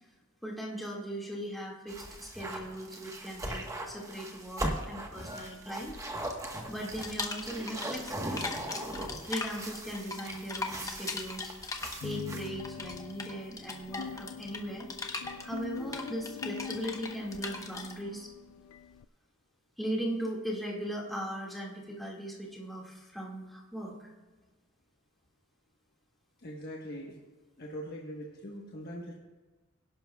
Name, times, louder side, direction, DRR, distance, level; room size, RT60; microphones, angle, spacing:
voice 1, 0.4-5.9 6.7-8.6 9.3-11.5 12.0-14.9 15.4-18.3 19.8-24.1, equal, ahead, -4 dB, 1.9 m, -38 dB
sound 1, 1.9-12.5, right 1 dB, 15° right, 1.2 m, -39 dB
sound 2, 7.0-8.1 8.4-17.9, left 3 dB, 15° left, 0.9 m, -39 dB
sound 3, 12.0-19.0, left 7 dB, 85° left, 0.3 m, -44 dB
voice 2, 26.4-27.2 27.6-29.1, equal, 45° left, -2 dB, 1.2 m, -41 dB
22.5 x 11.0 x 2.3 m, 1.3 s
head